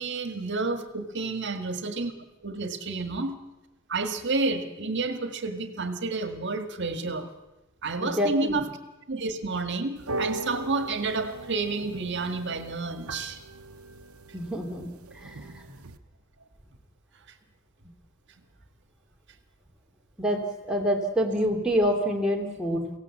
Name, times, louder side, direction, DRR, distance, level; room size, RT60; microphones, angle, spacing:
voice 1, 0.0-2.1 2.4-3.4 3.9-7.3 7.8-8.7 9.1-13.4, right 3 dB, 55° right, 8 dB, 1.8 m, -30 dB
voice 2, 8.0-8.6 14.3-14.9 15.1-15.5 20.2-22.9, equal, 5° right, -1 dB, 2.9 m, -27 dB
sound 1, 10.0-16.0, right 2 dB, 85° right, 1.0 m, -39 dB
23.5 x 17.0 x 7.3 m, 0.98 s
head